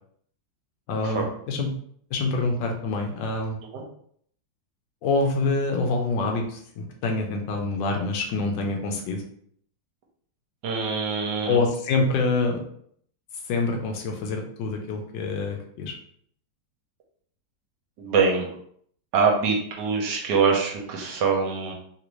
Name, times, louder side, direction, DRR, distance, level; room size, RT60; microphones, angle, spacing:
voice 1, 0.9-1.7 2.1-3.6 5.0-9.2 11.4-12.6 13.5-15.9, left 3 dB, 85° left, 3 dB, 1.3 m, -26 dB
voice 2, 10.6-11.6 18.0-18.5 19.1-21.7, right 5 dB, 70° right, 1 dB, 1.2 m, -24 dB
3.3 x 2.5 x 3.0 m, 0.63 s
omnidirectional pair, 2.0 m